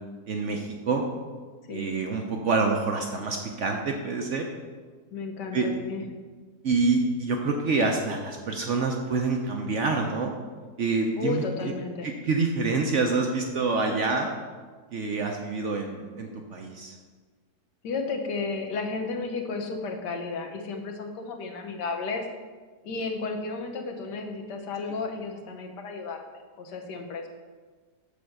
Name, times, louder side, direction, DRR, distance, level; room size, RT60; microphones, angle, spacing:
voice 1, 0.3-1.0 1.7-4.5 5.5-5.7 6.6-10.3 10.8-11.7 12.0-14.3 14.9-16.9, right 3 dB, 60° right, 2 dB, 0.8 m, -27 dB
voice 2, 5.1-6.0 11.2-12.1 17.8-22.3 22.8-26.2 26.6-27.3, left 4 dB, 85° left, 3 dB, 1.5 m, -33 dB
6.9 x 4.4 x 6.5 m, 1.4 s
omnidirectional pair, 1.8 m